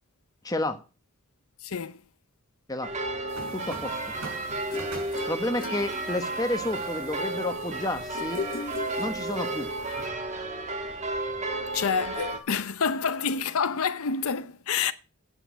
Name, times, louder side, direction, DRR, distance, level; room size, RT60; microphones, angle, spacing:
voice 1, 0.4-0.8 2.7-2.9 3.5-4.3 5.3-8.4 9.0-9.7, left 1 dB, 15° left, 1.1 m, -31 dB
voice 2, 1.6-2.0 11.7-14.9, left 6 dB, 75° left, 0.7 m, -28 dB
sound 1, 2.8-12.4, right 2 dB, 30° right, 1.5 m, -33 dB
sound 2, 3.3-10.1, right 3 dB, 85° right, 4.6 m, -46 dB
sound 3, 4.7-6.7 8.1-9.7, left 4 dB, 40° left, 0.7 m, -38 dB
8.9 x 7.6 x 6.1 m
head